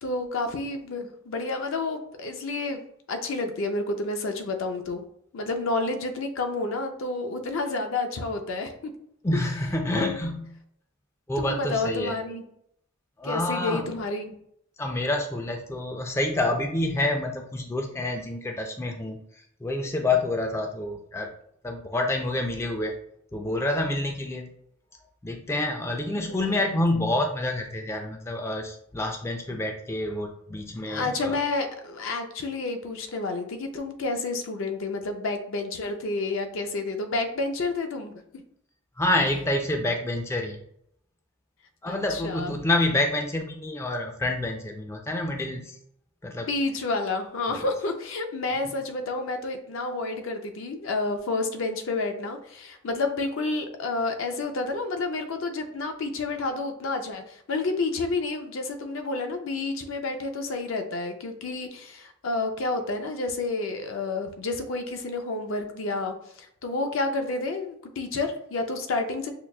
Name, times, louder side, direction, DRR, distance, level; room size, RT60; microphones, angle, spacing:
voice 1, 0.0-2.8 3.1-5.0 5.3-8.7 9.9-10.2 11.4-12.4 13.2-14.3 26.1-26.6 30.8-38.4 41.9-42.6 46.3-69.3, left 3 dB, 70° left, 5 dB, 0.5 m, -30 dB
voice 2, 9.2-10.5 11.3-12.1 13.2-13.9 14.8-19.2 19.6-21.3 21.6-22.9 23.3-24.5 25.2-31.4 39.0-40.6 41.8-45.6 46.2-46.5, left 2 dB, 15° left, 3 dB, 0.3 m, -27 dB
5.6 x 2.3 x 2.2 m, 0.73 s
head